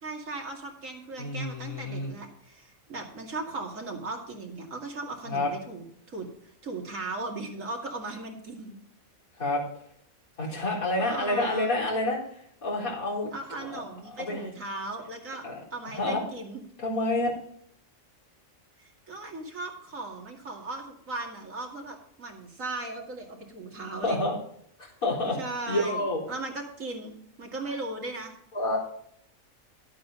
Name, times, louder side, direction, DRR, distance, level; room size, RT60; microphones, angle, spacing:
voice 1, 0.0-6.3 6.6-8.8 10.5-10.6 11.0-11.8 13.3-15.4 15.7-16.6 18.8-24.2 25.4-28.3, right 2 dB, 70° right, 1 dB, 2.7 m, -37 dB
voice 2, 1.2-2.2 5.3-5.5 9.4-9.6 10.4-13.3 13.6-13.8 14.2-14.5 15.4-15.5 15.8-16.2 16.8-17.3 24.0-24.4 24.8-25.4 25.7-26.2 28.5-28.8, left 2 dB, 80° left, -4 dB, 4.5 m, -28 dB
13.0 x 8.5 x 4.0 m, 0.68 s
omnidirectional pair, 1.4 m